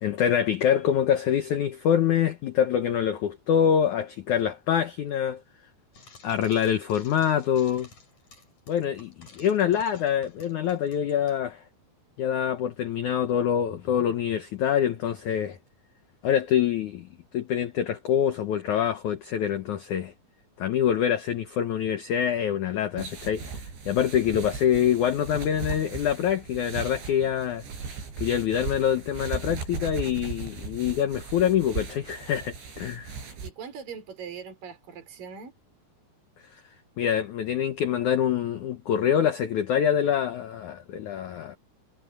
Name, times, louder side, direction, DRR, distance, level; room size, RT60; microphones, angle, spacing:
voice 1, 0.0-5.4 6.2-7.9 8.7-11.6 12.2-15.6 16.2-17.1 17.3-20.1 20.6-23.5 23.9-27.6 28.2-33.1 37.0-41.6, left 9 dB, 80° left, 1.7 m, -25 dB
Frying (food), 5.9-11.4, left 3 dB, 40° left, 6.5 m, -52 dB
sound 1, 23.0-33.5, right 5 dB, 80° right, 8.9 m, -37 dB
voice 2, 33.4-35.5, right 6 dB, 50° right, 6.7 m, -41 dB
omnidirectional pair, 5.1 m